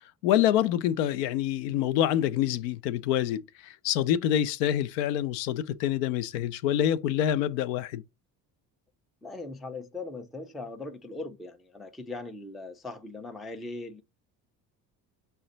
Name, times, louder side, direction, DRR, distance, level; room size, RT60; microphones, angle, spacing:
voice 1, 0.2-8.0, left 11 dB, 75° left, 0.5 m, -26 dB
voice 2, 9.2-14.0, left 3 dB, ahead, 0.3 m, -39 dB
5.5 x 2.2 x 3.8 m
hypercardioid pair, 60°, 50 cm